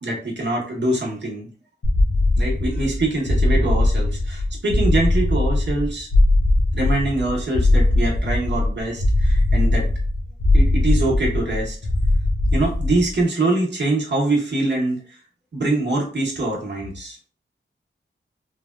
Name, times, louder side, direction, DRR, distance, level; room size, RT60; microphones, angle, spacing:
voice 1, 0.0-1.5 2.4-6.1 6.7-9.9 10.5-11.8 12.5-15.2 15.5-17.3, right 2 dB, 60° right, -2 dB, 1.0 m, -24 dB
sound 1, 1.8-13.2, left 2 dB, 75° left, 0.6 m, -19 dB
3.2 x 2.3 x 2.2 m, 0.42 s
wide cardioid pair, 80°, 20 cm